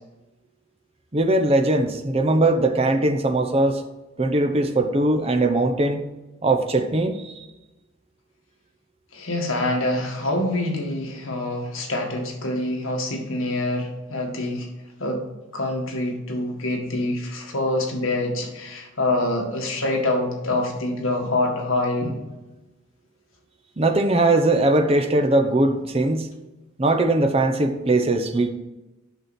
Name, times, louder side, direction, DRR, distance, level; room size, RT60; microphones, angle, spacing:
voice 1, 1.1-3.8 4.2-6.0 6.4-7.3 23.8-26.3 26.8-28.5, right 2 dB, 25° right, 5 dB, 0.7 m, -20 dB
voice 2, 9.1-14.7 15.0-15.2 15.5-22.2, left 2 dB, 70° left, 1 dB, 1.7 m, -25 dB
8.0 x 6.3 x 4.2 m, 1.1 s
head